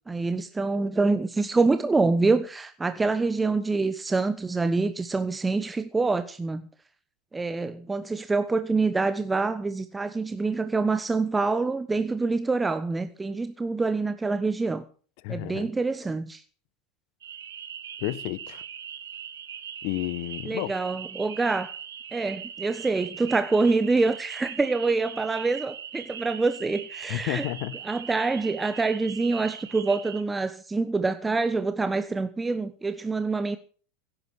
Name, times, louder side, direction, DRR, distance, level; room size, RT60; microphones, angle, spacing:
voice 1, 0.1-6.6 7.3-14.8 15.3-16.4 20.4-21.7 22.1-27.5 27.8-33.6, right 3 dB, 15° right, 1.1 m, -26 dB
voice 2, 15.2-15.7 18.0-18.6 19.8-20.7 27.1-27.8, left 18 dB, 55° left, 1.1 m, -31 dB
sound 1, 17.2-30.2, right 8 dB, 75° right, 1.5 m, -40 dB
16.5 x 10.0 x 6.4 m
hypercardioid pair, 85°, 0 cm